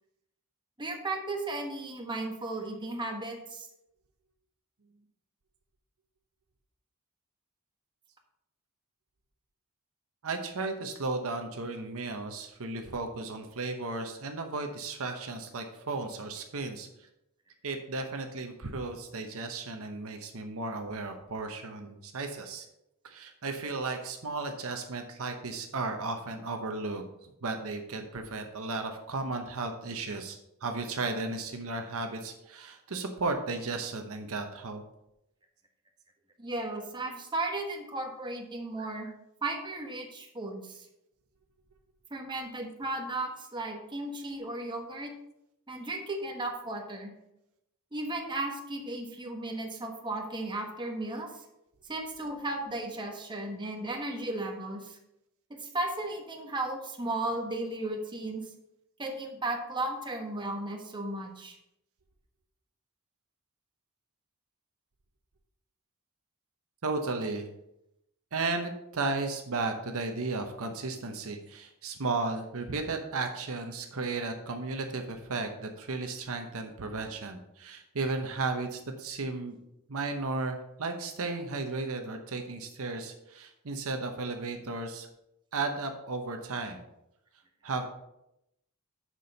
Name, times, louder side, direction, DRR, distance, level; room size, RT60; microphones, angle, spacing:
voice 1, 0.8-3.7 23.8-24.0 36.4-39.1 39.4-40.9 42.1-45.1 45.7-47.1 47.9-51.3 51.8-55.0 55.6-58.4 59.0-61.6, right 2 dB, 20° right, 2 dB, 1.2 m, -35 dB
voice 2, 10.2-16.9 17.6-22.7 23.0-34.8 66.8-67.5 68.3-79.6 79.9-85.1 85.5-86.8 87.6-87.9, right 3 dB, 65° right, 5 dB, 0.9 m, -34 dB
6.8 x 6.2 x 5.3 m, 0.83 s
head